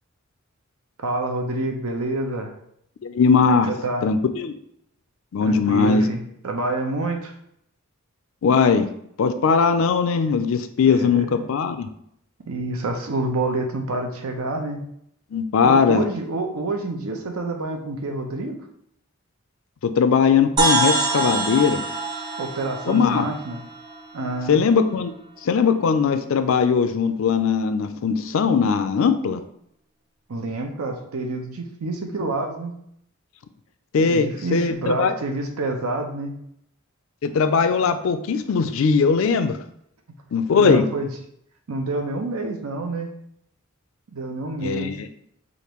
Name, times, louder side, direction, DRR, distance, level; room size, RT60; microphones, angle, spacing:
voice 1, 1.0-2.5 3.5-4.1 5.4-7.3 10.9-11.4 12.4-14.8 15.6-18.6 22.4-23.6 24.1-24.6 30.3-32.7 34.0-36.3 40.6-41.1 41.7-43.1 44.1-44.9, right 2 dB, 85° right, 3 dB, 0.7 m, -28 dB
voice 2, 3.0-3.7 4.0-4.5 5.3-6.0 8.4-8.9 9.2-11.9 15.3-16.0 19.8-21.8 22.9-23.3 24.5-25.1 25.4-29.4 33.9-35.1 37.2-39.6 40.3-40.8 44.6-45.1, left 5 dB, 65° left, 10 dB, 0.4 m, -19 dB
sound 1, 20.6-24.3, right 2 dB, 20° right, 0.6 m, -24 dB
5.0 x 2.6 x 3.0 m, 0.73 s
head